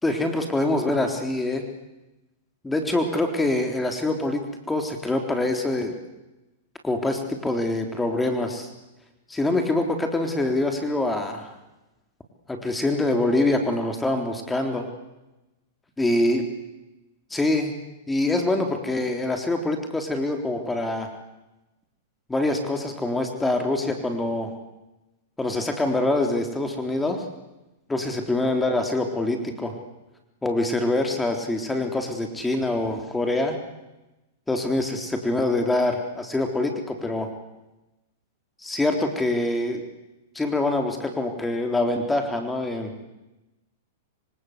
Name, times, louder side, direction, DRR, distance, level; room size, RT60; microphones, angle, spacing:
voice 1, 0.0-1.6 2.6-5.9 6.8-8.7 9.3-11.5 12.5-14.9 16.0-16.4 17.3-17.7 18.1-21.1 22.3-24.5 25.4-27.2 27.9-29.8 30.4-33.6 34.5-37.3 38.6-39.8 40.3-43.1, left 2 dB, 10° left, 4 dB, 3.7 m, -25 dB
26.0 x 25.5 x 8.2 m, 1.0 s
hypercardioid pair, 115°, 0 cm